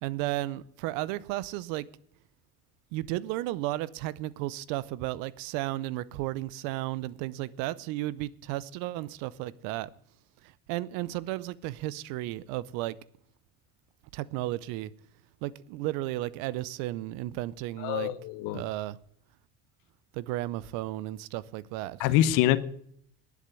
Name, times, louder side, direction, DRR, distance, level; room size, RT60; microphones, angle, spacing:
voice 1, 0.0-1.9 2.9-9.9 10.4-13.0 14.1-14.9 15.4-18.1 18.5-19.0 20.1-22.0, right 16 dB, 85° right, 0.7 m, -34 dB
voice 2, 17.8-18.6 22.0-22.6, left 13 dB, 80° left, 1.0 m, -25 dB
11.0 x 7.3 x 9.4 m
supercardioid pair, 90°, 32 cm